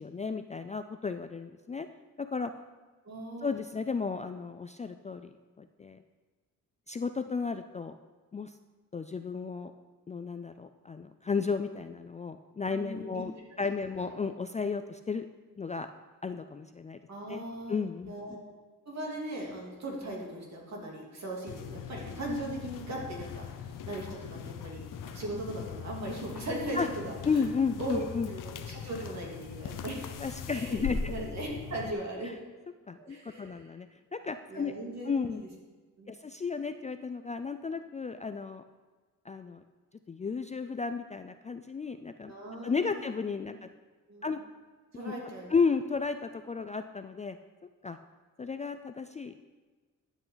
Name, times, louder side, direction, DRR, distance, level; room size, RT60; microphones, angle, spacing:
voice 1, 0.0-1.9 2.2-2.5 3.4-6.0 6.9-8.0 8.3-8.5 8.9-9.7 10.1-13.3 13.6-15.3 15.6-15.9 16.2-17.0 17.3-17.4 17.7-18.1 26.7-26.9 27.3-28.3 30.2-31.1 32.9-34.7 35.1-35.4 36.1-38.6 39.3-39.6 40.1-42.3 42.6-43.7 44.2-44.4 45.0-45.1 45.5-47.4 47.8-48.0 48.4-49.4, left 5 dB, 20° left, 9 dB, 0.3 m, -33 dB
voice 2, 3.0-3.5 12.7-13.2 17.1-17.7 18.1-18.4 18.9-27.4 27.8-30.2 30.5-32.3 33.0-33.7 34.5-35.5 36.0-36.2 42.2-43.0 44.1-44.4 44.9-45.5, right 1 dB, 55° right, -2 dB, 2.9 m, -38 dB
sound 1, 21.5-31.9, left 6 dB, 75° left, 0.7 m, -41 dB
12.0 x 8.3 x 3.9 m, 1.3 s
cardioid pair, 105°, 33 cm